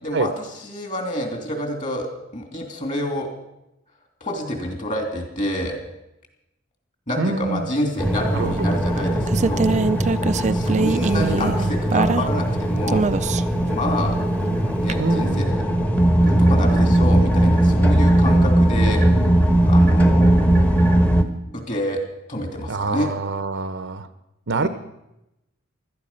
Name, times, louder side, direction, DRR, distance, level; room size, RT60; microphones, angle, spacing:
voice 1, 0.0-2.1 2.3-3.3 4.2-5.8 7.1-9.8 10.5-13.1 13.7-14.2 14.8-15.6 16.2-19.0 19.6-20.4 21.5-22.0 22.3-23.1 24.6-24.7, left 1 dB, 35° left, 3 dB, 3.0 m, -28 dB
voice 2, 7.2-7.7 8.3-8.7 11.2-11.6 15.0-15.5 22.7-24.1 24.5-24.7, right 3 dB, 60° right, 12 dB, 0.8 m, -25 dB
sound 1, 8.0-21.2, right 1 dB, 5° left, 1.0 m, -19 dB
sound 2, 8.6-12.5 12.9-13.6 14.9-15.0, right 4 dB, 35° right, 0.4 m, -23 dB
16.5 x 12.5 x 5.6 m, 0.90 s
head